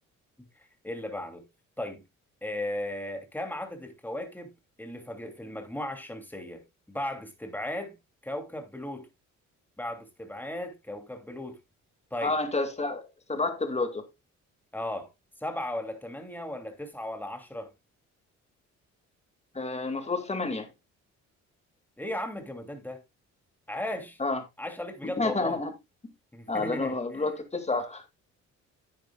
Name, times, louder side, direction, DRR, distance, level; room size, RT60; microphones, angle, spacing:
voice 1, 0.8-1.4 1.8-2.0 2.4-4.5 4.8-7.9 8.2-9.1 9.8-11.6 12.1-12.4 14.7-15.1 15.4-17.7 22.0-23.0 23.7-24.2 24.6-25.6 26.3-27.3, left 1 dB, 5° left, 2.7 m, -36 dB
voice 2, 12.2-14.1 19.5-20.7 24.2-24.4 25.0-25.7 26.0-26.1 26.5-28.0, left 3 dB, 20° left, 2.2 m, -30 dB
10.5 x 9.0 x 2.3 m
cardioid pair, 90°, 30 cm